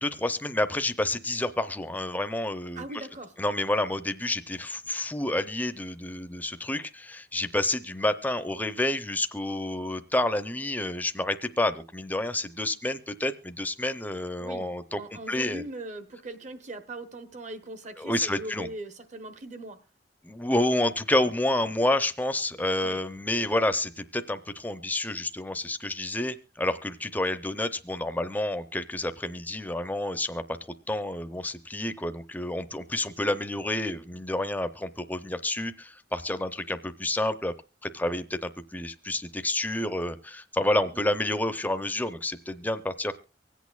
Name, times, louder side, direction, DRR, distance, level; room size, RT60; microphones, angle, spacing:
voice 1, 0.0-2.8 3.4-15.0 15.3-15.6 18.0-18.7 20.2-30.4 30.9-37.5 37.8-43.1, left 1 dB, 10° left, 0.6 m, -29 dB
voice 2, 2.7-3.3 14.4-14.7 15.0-19.8 22.8-23.0 40.9-41.1, right 2 dB, 45° right, 1.0 m, -40 dB
24.5 x 8.3 x 2.4 m
head